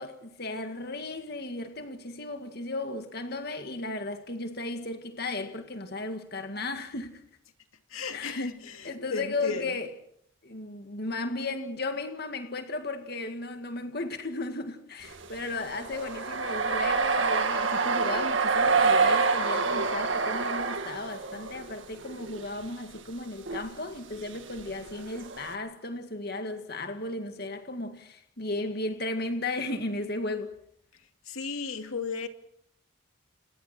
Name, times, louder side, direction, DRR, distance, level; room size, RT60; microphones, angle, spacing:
voice 1, 0.0-7.2 8.1-8.5 8.8-9.9 10.4-30.5, left 2 dB, 50° left, 2.0 m, -35 dB
voice 2, 7.9-9.8 31.3-32.3, left 4 dB, 90° left, 2.5 m, -34 dB
sound 1, 15.1-21.7 22.0-22.6 23.0-23.1 23.5-23.7 24.3-25.6, right 4 dB, 65° right, 2.0 m, -27 dB
29.5 x 29.0 x 4.4 m
head